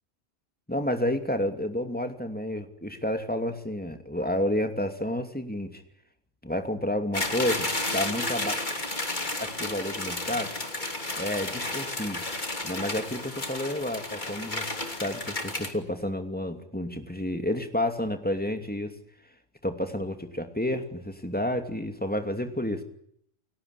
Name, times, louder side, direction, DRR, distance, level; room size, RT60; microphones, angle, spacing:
voice 1, 0.7-5.8 6.4-8.6 9.4-10.6 11.1-12.2 12.6-14.7 15.0-19.0 19.6-22.8, left 1 dB, 5° left, 6 dB, 2.6 m, -30 dB
sound 1, 7.1-15.7, left 2 dB, 40° left, 3.1 m, -32 dB
30.0 x 17.5 x 8.4 m, 0.72 s
omnidirectional pair, 1.3 m